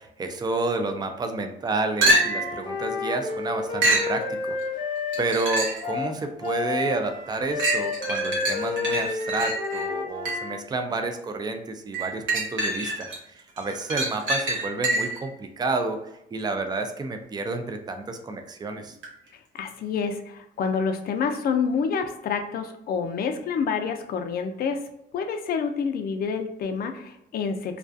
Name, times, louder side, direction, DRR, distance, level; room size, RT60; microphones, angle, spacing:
voice 1, 0.0-19.0, right 3 dB, 20° right, 6 dB, 0.4 m, -30 dB
sound 1, 2.0-2.6 3.8-4.1 5.1-5.9 6.4-6.5 7.6-10.6 11.9-13.2 13.6-15.3 19.0-19.1, right 1 dB, 75° right, 0.9 m, -26 dB
Wind instrument woodwind instrument, 2.1-10.6, left 4 dB, 25° left, 0.8 m, -31 dB
voice 2, 19.5-24.8 25.1-27.8, left 6 dB, 50° left, 6 dB, 0.4 m, -28 dB
2.3 x 2.3 x 2.5 m, 0.81 s
cardioid pair, 90°, 20 cm